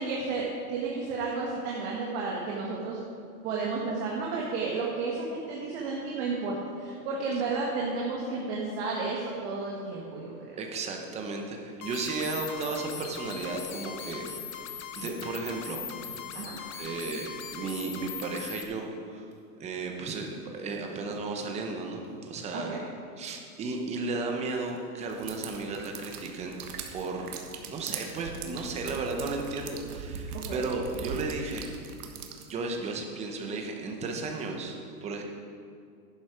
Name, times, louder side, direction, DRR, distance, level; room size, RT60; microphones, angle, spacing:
voice 1, 0.0-3.0 3.4-10.6 16.3-16.6 22.5-22.8 30.5-30.6, right 4 dB, 45° right, -3 dB, 1.6 m, -32 dB
voice 2, 10.6-14.6 15.0-16.3 16.8-19.2 19.6-22.8 23.2-26.6 26.9-31.7 32.5-35.2, right 3 dB, 15° right, 2 dB, 0.8 m, -34 dB
sound 1, 11.8-18.7, left 8 dB, 55° left, 1.0 m, -40 dB
sound 2, 25.1-32.5, right 6 dB, 75° right, 1.4 m, -40 dB
11.0 x 7.9 x 5.0 m, 2.4 s
supercardioid pair, 155°, 46 cm